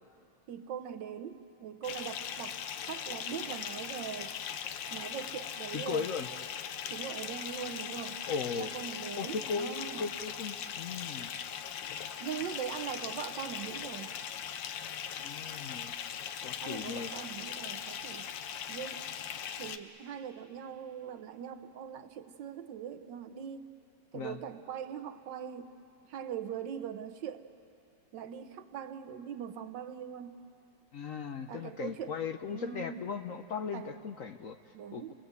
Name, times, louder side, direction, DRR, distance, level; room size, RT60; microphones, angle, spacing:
voice 1, 0.5-2.6 2.9-4.3 4.9-6.1 6.9-8.2 8.6-10.0 12.2-14.1 16.6-18.3 18.7-19.0 19.6-23.7 24.1-25.7 26.1-27.5 28.1-30.4 31.5-32.2 32.5-33.0 33.7-33.9 34.7-35.1, right 8 dB, 75° right, 8 dB, 1.6 m, -41 dB
Bathtub (filling or washing) / Fill (with liquid), 1.8-19.8, left 8 dB, 85° left, 1.5 m, -40 dB
voice 2, 5.7-6.3 8.3-8.7 9.2-11.3 15.2-15.9 16.4-17.1 24.1-24.4 30.9-34.6 34.9-35.1, left 5 dB, 60° left, 7 dB, 0.9 m, -37 dB
29.0 x 20.5 x 8.2 m, 2.7 s
omnidirectional pair, 2.0 m